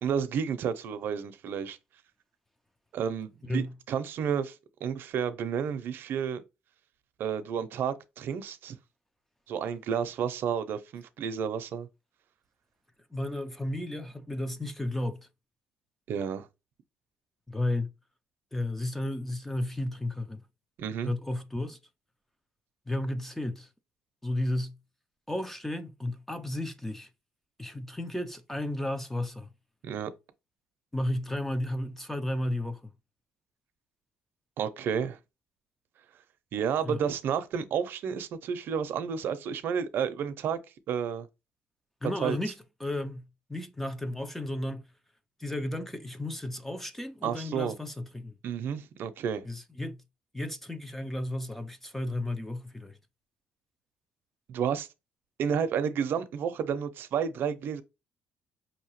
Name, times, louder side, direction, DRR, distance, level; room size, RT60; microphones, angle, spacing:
voice 1, 0.0-1.8 2.9-4.5 4.8-6.4 7.2-8.8 9.5-11.9 16.1-16.5 20.8-21.1 29.8-30.1 34.6-35.2 36.5-40.6 40.9-41.3 42.2-42.4 47.2-47.8 48.4-49.4 54.5-54.9 55.4-57.8, right 7 dB, 60° right, 0.6 m, -31 dB
voice 2, 3.4-3.7 13.1-15.3 17.5-17.9 18.5-20.4 21.0-21.8 22.9-23.7 24.2-24.8 25.3-27.1 27.6-29.5 30.9-32.9 36.8-37.0 42.0-42.5 42.8-44.9 45.4-48.3 49.5-50.0 50.3-53.0, left 1 dB, 5° left, 0.5 m, -33 dB
5.2 x 2.8 x 2.9 m
cardioid pair, 125°, 4 cm